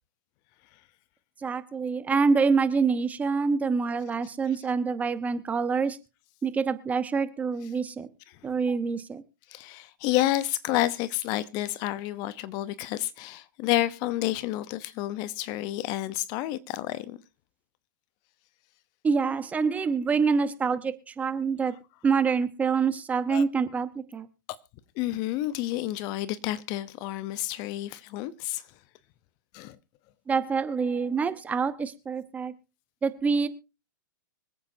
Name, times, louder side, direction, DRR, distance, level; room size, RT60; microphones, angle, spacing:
voice 1, 1.4-6.0 6.4-8.1 8.4-9.2 19.0-21.8 22.0-24.3 30.3-32.5 33.0-33.5, right 5 dB, 15° right, 0.9 m, -26 dB
voice 2, 9.5-17.2 23.3-23.4 25.0-28.6 29.5-29.8, left 15 dB, 35° left, 0.8 m, -30 dB
25.0 x 8.7 x 2.7 m
hypercardioid pair, 125°, 11 cm